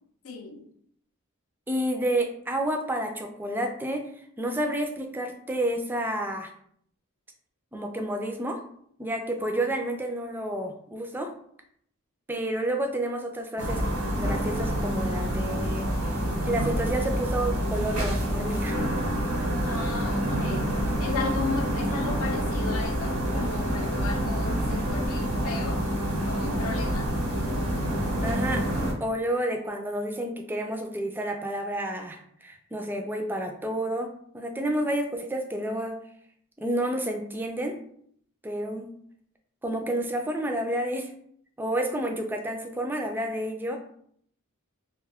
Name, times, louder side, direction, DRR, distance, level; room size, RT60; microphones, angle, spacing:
voice 1, 0.2-0.7 19.6-20.7 21.0-25.9 26.3-27.1 34.7-34.8, left 4 dB, 75° left, 3 dB, 0.5 m, -35 dB
voice 2, 1.7-4.1 4.4-6.5 7.7-8.6 9.0-11.3 12.3-13.8 14.2-16.2 16.4-18.8 28.2-28.7 29.0-36.0 36.6-37.8 38.4-39.0 39.6-41.1 41.6-43.8, right 1 dB, 10° right, 3 dB, 0.3 m, -30 dB
sound 1, 13.6-28.9, equal, 85° right, 0.9 m, -27 dB
2.5 x 2.2 x 3.4 m, 0.65 s
head